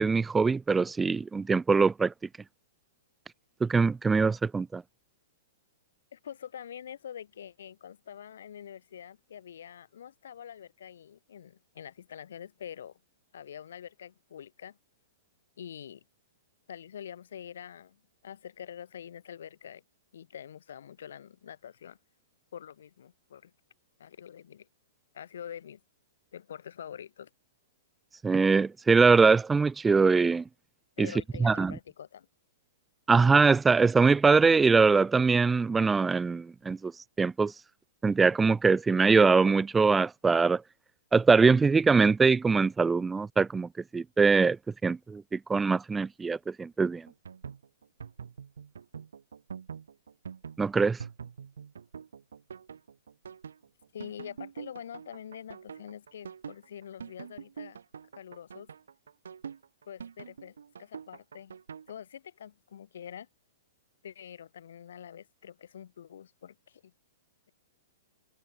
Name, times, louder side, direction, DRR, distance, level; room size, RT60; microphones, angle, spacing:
voice 1, 0.0-2.1 3.6-4.8 28.2-30.4 31.0-31.1 31.4-31.7 33.1-36.9 37.2-37.5 38.0-40.6 41.1-44.6 44.8-47.0 50.6-51.0, right 4 dB, 10° right, 0.4 m, -23 dB
voice 2, 6.1-13.0 13.3-14.8 15.6-16.0 16.7-19.8 20.1-22.0 22.5-23.5 24.0-24.7 25.1-25.8 26.3-27.3 31.0-32.3 53.9-57.8 58.1-58.7 59.9-61.6 61.9-63.3 64.0-66.9, left 9 dB, 75° left, 4.6 m, -45 dB
sound 1, 47.1-61.9, right 7 dB, 85° right, 0.9 m, -44 dB
hypercardioid pair, 135°, 0 cm